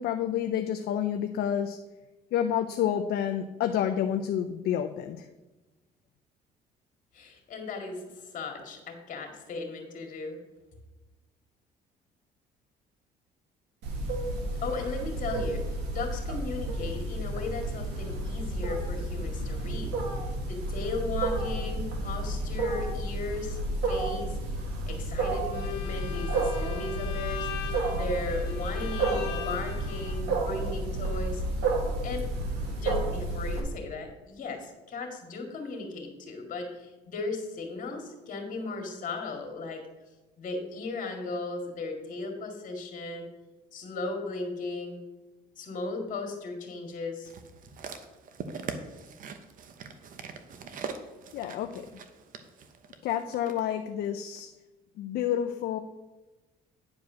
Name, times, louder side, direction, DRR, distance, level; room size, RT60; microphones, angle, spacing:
voice 1, 0.0-1.8 2.3-5.3 51.3-51.8 53.0-54.5 55.0-55.8, left 9 dB, 65° left, 7 dB, 0.6 m, -29 dB
voice 2, 7.1-10.4 14.6-15.6 15.9-20.1 20.4-24.4 24.9-27.5 27.9-31.4 32.0-32.3 32.8-39.8 40.4-43.3 43.7-45.0 45.6-47.3, left 3 dB, 50° left, 3 dB, 2.1 m, -36 dB
Wild animals, 13.8-33.6, right 2 dB, 90° right, 1.9 m, -31 dB
Bowed string instrument, 25.5-30.2, left 8 dB, 85° left, 1.1 m, -40 dB
sound 1, 47.3-53.6 54.4-54.5, right 5 dB, 55° right, 0.9 m, -42 dB
9.5 x 4.8 x 6.1 m, 1.1 s
cardioid pair, 110°, 17 cm